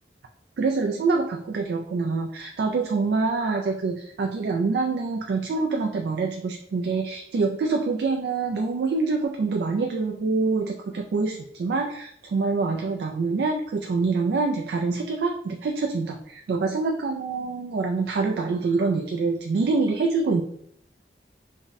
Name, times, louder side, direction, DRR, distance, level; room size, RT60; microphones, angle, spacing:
voice 1, 0.6-20.4, right 4 dB, 70° right, 3 dB, 0.3 m, -25 dB
3.5 x 2.1 x 4.0 m, 0.67 s
head